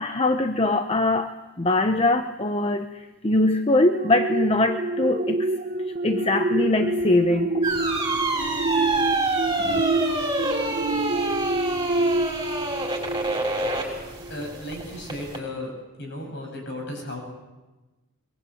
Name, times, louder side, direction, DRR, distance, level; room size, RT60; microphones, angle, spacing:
voice 1, 0.0-1.3 1.6-5.5 6.0-7.5 9.6-9.8, left 2 dB, 25° left, 7 dB, 0.8 m, -22 dB
sound 1, 3.9-13.8 14.2-14.4, right 2 dB, 40° right, 1.0 m, -27 dB
sound 2, 7.6-15.4, right 2 dB, 20° right, 5.9 m, -27 dB
voice 2, 14.3-15.7 16.0-17.2, left 1 dB, 55° left, 2 dB, 7.9 m, -34 dB
23.0 x 22.5 x 8.5 m, 1.1 s
head